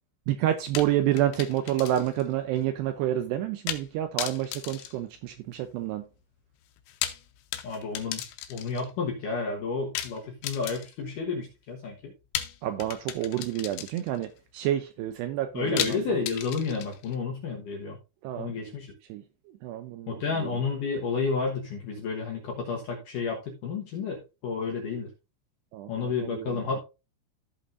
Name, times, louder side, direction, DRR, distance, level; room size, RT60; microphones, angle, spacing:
voice 1, 0.3-6.0 12.6-14.3 14.5-16.0 18.2-18.5 19.1-19.2 19.6-20.5 25.7-26.5, right 12 dB, 80° right, 9 dB, 2.5 m, -29 dB
sound 1, 0.7-2.3 2.6-2.7 3.7-3.9 4.2-5.7 6.8-8.9 9.9-11.1 12.3-14.3 15.8-17.2, left 11 dB, 85° left, 3.3 m, -36 dB
voice 2, 7.6-8.2 8.5-12.1 15.5-18.0 18.4-18.9 20.1-25.1 25.9-26.8, left 4 dB, 65° left, 0 dB, 2.1 m, -31 dB
15.0 x 5.4 x 2.5 m, 0.28 s
omnidirectional pair, 5.4 m